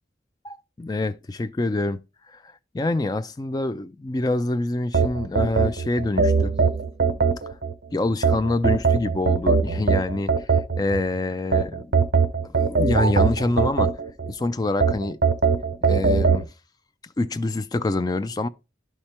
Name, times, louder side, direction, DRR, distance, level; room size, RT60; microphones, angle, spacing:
voice 1, 0.4-2.0 2.3-6.6 7.9-10.3 10.8-11.9 12.4-13.9 14.3-15.2 15.8-16.5 17.2-18.5, left 2 dB, 20° left, 0.3 m, -26 dB
sound 1, 4.9-7.7 8.2-11.0 11.5-14.3 14.8-16.4, right 5 dB, 65° right, 0.7 m, -20 dB
11.0 x 4.3 x 3.3 m
head